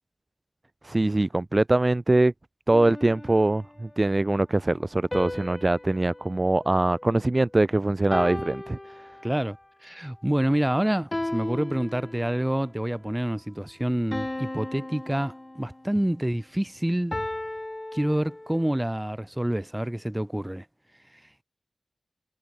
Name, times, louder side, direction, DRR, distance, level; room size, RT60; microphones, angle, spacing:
voice 1, 0.8-2.3 2.7-8.8, right 2 dB, 25° right, 0.9 m, -23 dB
sound 1, 2.7-3.9 5.1-7.5 8.1-9.6 11.1-12.6 14.1-16.0 17.1-18.7, left 1 dB, 20° left, 7.9 m, -36 dB
voice 2, 9.2-9.6 9.8-17.2 17.9-20.6, right 1 dB, 10° right, 1.7 m, -27 dB
cardioid pair, 60°, 0 cm